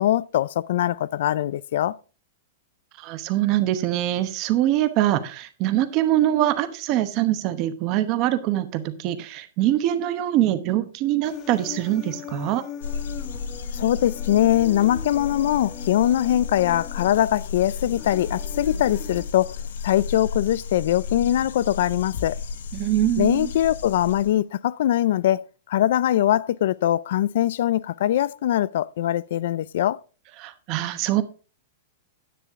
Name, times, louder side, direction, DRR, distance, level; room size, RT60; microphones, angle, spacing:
voice 1, 0.0-2.0 13.7-19.6 19.8-22.4 23.2-30.0, left 12 dB, 55° left, 0.4 m, -22 dB
voice 2, 3.0-12.6 22.7-23.5 30.4-31.2, right 13 dB, 30° right, 0.9 m, -23 dB
Human voice, 11.2-19.2, left 9 dB, 25° left, 0.8 m, -40 dB
sound 1, 12.8-24.3, left 5 dB, 85° left, 1.1 m, -33 dB
10.0 x 8.6 x 3.6 m
supercardioid pair, 170°, 0 cm